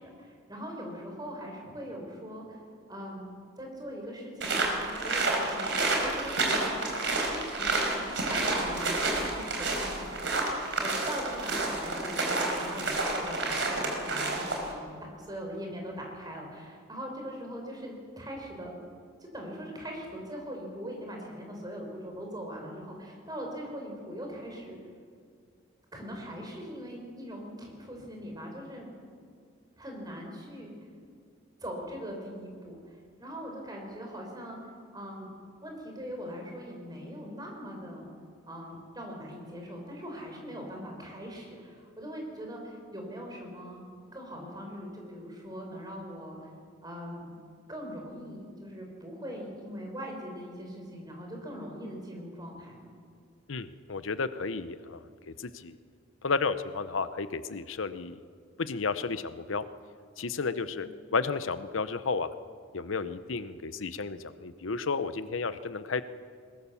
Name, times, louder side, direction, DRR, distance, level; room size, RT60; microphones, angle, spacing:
voice 1, 0.0-2.6 2.9-3.3 3.6-6.8 7.3-18.7 19.2-24.8 25.9-28.9 29.8-30.7 31.6-34.6 34.9-35.3 35.6-38.1 38.5-43.9 44.1-46.5 46.8-47.3 47.7-52.9 60.8-60.9, equal, 20° right, 1 dB, 5.0 m, -41 dB
sound 1, 4.4-14.7, right 2 dB, 65° right, 4.6 m, -29 dB
voice 2, 53.5-55.0 55.4-55.8 56.2-58.2 58.6-59.6 60.2-62.3 62.7-66.0, left 4 dB, 80° left, 13 dB, 0.8 m, -32 dB
21.0 x 21.0 x 7.1 m, 2.1 s
head